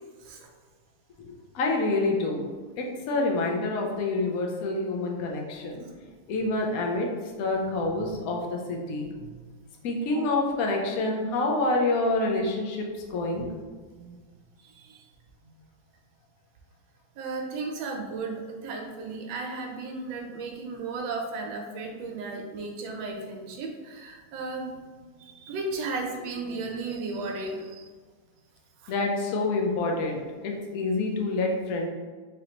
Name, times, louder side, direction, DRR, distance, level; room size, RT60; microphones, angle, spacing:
voice 1, 1.2-2.5 2.7-5.9 6.3-7.1 7.4-9.1 9.8-13.6 28.9-31.9, left 2 dB, 65° left, 0 dB, 0.9 m, -27 dB
voice 2, 17.2-18.3 18.6-24.8 25.2-27.9 28.8-28.9, right 3 dB, 80° right, 1 dB, 1.4 m, -35 dB
3.7 x 3.4 x 2.8 m, 1.5 s
omnidirectional pair, 2.1 m